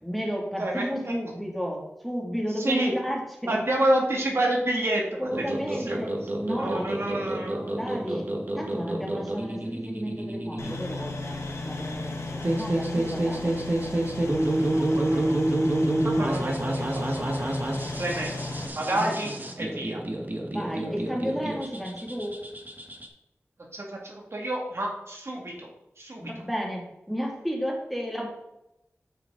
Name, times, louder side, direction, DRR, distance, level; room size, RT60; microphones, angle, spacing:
voice 1, 0.0-3.7 5.2-6.8 7.6-8.3 8.5-11.4 11.6-13.6 18.9-19.4 20.4-22.4 26.2-28.3, equal, ahead, -2 dB, 2.2 m, -33 dB
voice 2, 0.6-1.2 2.6-2.9 3.5-5.4 5.8-6.0 6.6-7.8 14.7-15.4 16.0-17.4 18.0-18.3 18.8-19.3 19.6-20.0 23.7-25.7 26.0-26.3, right 1 dB, 60° right, -1 dB, 1.9 m, -29 dB
sound 1, 5.3-23.1, right 1 dB, 40° right, 1.2 m, -29 dB
sound 2, 10.6-18.7, left 2 dB, 85° left, 1.2 m, -35 dB
8.9 x 5.9 x 3.7 m, 0.86 s
wide cardioid pair, 60°, 5 cm